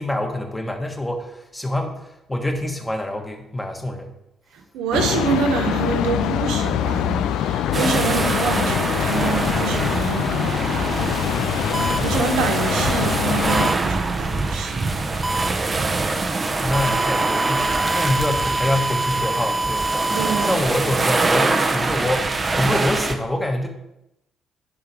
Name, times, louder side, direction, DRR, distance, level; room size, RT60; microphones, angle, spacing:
voice 1, 0.0-4.1 16.6-20.1 20.4-23.7, left 1 dB, 15° left, 1.5 m, -26 dB
voice 2, 4.7-10.6 12.0-15.0 20.1-20.6, right 5 dB, 75° right, 1.0 m, -26 dB
sound 1, 4.9-13.7, left 10 dB, 75° left, 0.3 m, -24 dB
sound 2, 7.7-23.2, right 3 dB, 35° right, 0.8 m, -24 dB
sound 3, 11.7-12.0 13.5-13.7 15.2-15.5 16.7-20.5, right 1 dB, 15° right, 0.4 m, -25 dB
10.0 x 3.7 x 4.7 m
hypercardioid pair, 55°, 0 cm